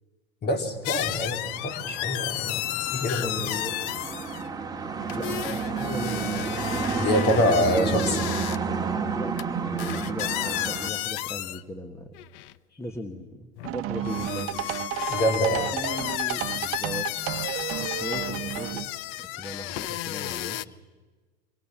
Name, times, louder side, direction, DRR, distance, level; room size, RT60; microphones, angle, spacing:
voice 1, 0.4-2.6 2.9-3.3 7.0-8.2 15.1-15.7, left 1 dB, 30° left, 7 dB, 2.8 m, -25 dB
sound 1, 0.8-4.5 5.0-8.6 9.4-9.5 9.8-11.6 12.1-12.5 13.6-20.6, left 16 dB, 55° left, 0.7 m, -33 dB
sound 2, 1.3-10.9, right 5 dB, 10° right, 2.1 m, -30 dB
voice 2, 3.2-3.8 5.1-7.1 8.9-12.1 12.8-14.6 15.5-17.1 17.3-17.4 17.8-18.9 19.2-20.8, left 1 dB, 10° left, 7 dB, 1.4 m, -38 dB
sound 3, 13.6-18.9, right 14 dB, 40° right, 1.1 m, -32 dB
24.0 x 19.0 x 7.3 m, 1.3 s
supercardioid pair, 115°, 33 cm